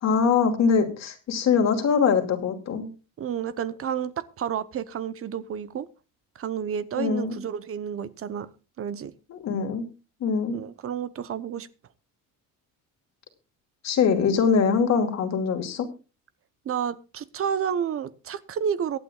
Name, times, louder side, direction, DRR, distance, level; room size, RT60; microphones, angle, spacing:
voice 1, 0.0-2.9 7.0-7.4 9.3-9.8 10.2-10.6 13.8-15.9, left 6 dB, 55° left, 2.6 m, -23 dB
voice 2, 3.2-5.9 6.3-8.5 8.8-9.1 10.5-11.7 16.6-19.0, right 8 dB, 45° right, 0.9 m, -30 dB
23.5 x 8.8 x 2.4 m
cardioid pair, 115°, 32 cm